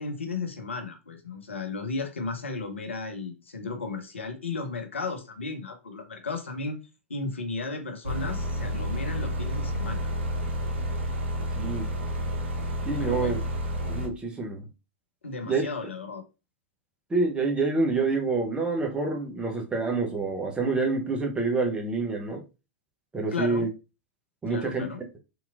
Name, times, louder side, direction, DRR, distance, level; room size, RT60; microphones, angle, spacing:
voice 1, 0.0-6.8 7.1-10.0 13.0-13.3 15.2-16.2 23.3-23.7 24.5-25.0, left 3 dB, 75° left, 0.7 m, -34 dB
sound 1, 8.0-14.1, equal, 65° right, 0.9 m, -30 dB
voice 2, 11.6-11.9 12.9-13.4 13.9-14.7 15.5-15.6 17.1-22.4 23.1-23.7 24.4-24.9, right 3 dB, 15° right, 0.8 m, -27 dB
3.7 x 2.9 x 2.4 m
figure-of-eight pair, 95°, 7 cm